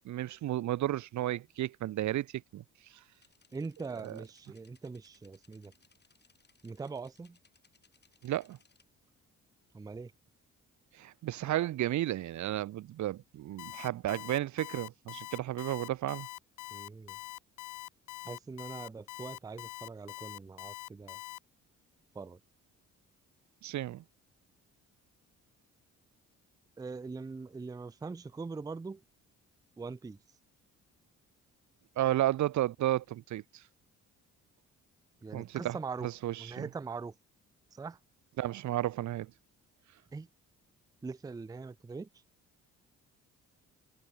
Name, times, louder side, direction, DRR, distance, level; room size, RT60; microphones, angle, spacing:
voice 1, 0.0-2.3 2.5-2.6 4.0-4.2 8.2-8.6 11.0-16.3 23.6-24.0 32.0-33.4 35.3-35.8 36.0-36.7 38.4-39.3, right 14 dB, 70° right, 1.0 m, -32 dB
sound 1, 3.1-8.8, left 5 dB, 35° left, 6.4 m, -68 dB
voice 2, 3.5-5.7 6.6-7.4 9.7-10.1 16.7-17.2 18.2-21.2 22.1-22.4 26.8-29.0 29.8-30.2 35.2-36.1 36.4-37.1 37.7-38.0 40.1-40.3 41.0-42.1, right 4 dB, 10° right, 0.4 m, -42 dB
Alarm, 13.6-21.4, left 17 dB, 85° left, 0.9 m, -44 dB
cardioid pair, 90°, 30 cm